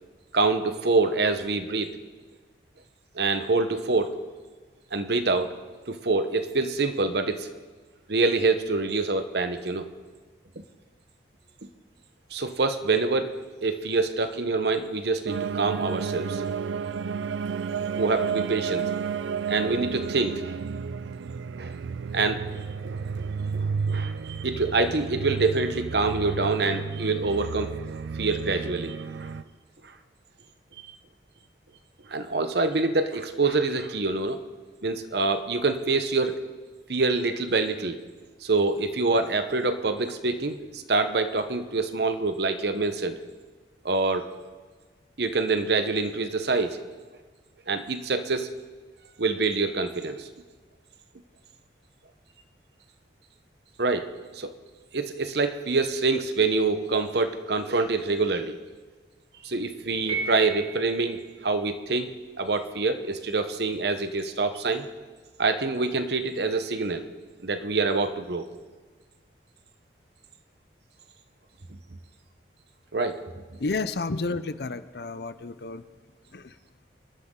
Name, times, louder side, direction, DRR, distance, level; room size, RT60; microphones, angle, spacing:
voice 1, 0.3-1.9 3.1-4.1 4.9-5.5 5.9-7.5 8.1-9.9 12.3-16.4 18.0-18.9 19.5-20.5 21.6-21.7 22.1-29.3 32.1-34.4 34.8-36.4 36.9-38.0 38.4-43.2 43.8-44.3 45.2-46.8 47.7-48.5 49.2-50.3 53.8-54.1 54.3-54.5 54.9-58.6 59.4-64.9 65.4-67.0 67.4-68.5 72.9-73.2, right 3 dB, 60° right, 8 dB, 1.0 m, -26 dB
sound 1, 15.3-29.4, right 6 dB, 80° right, 0.4 m, -31 dB
Piano, 60.1-61.2, right 5 dB, 35° right, 3.4 m, -34 dB
voice 2, 73.6-75.8 76.3-76.5, left 3 dB, 60° left, 13 dB, 0.6 m, -31 dB
26.0 x 12.0 x 3.8 m, 1.4 s
head